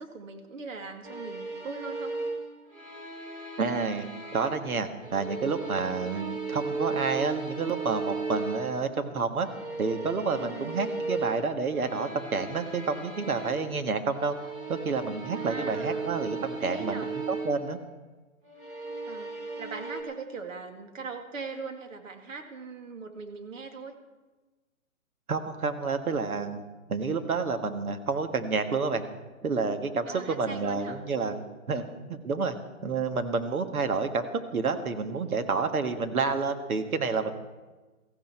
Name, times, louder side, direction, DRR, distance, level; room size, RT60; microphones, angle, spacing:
voice 1, 0.0-2.2 5.9-6.2 10.4-10.8 15.3-16.3 16.6-17.1 19.0-24.0 30.1-31.0 31.7-31.8, right 4 dB, 65° right, 5 dB, 2.2 m, -40 dB
sound 1, 1.0-4.7 5.0-8.9 9.4-13.8 14.1-17.6 18.4-20.0, right 3 dB, 20° right, 2.8 m, -36 dB
voice 2, 3.6-4.1 4.3-9.5 9.8-14.3 14.7-17.8 25.3-26.6 26.9-29.1 29.4-31.8 32.1-32.6 32.8-34.2 34.5-37.3, right 4 dB, 85° right, 7 dB, 1.8 m, -29 dB
16.5 x 15.0 x 4.5 m, 1.2 s
hypercardioid pair, 150°, 42 cm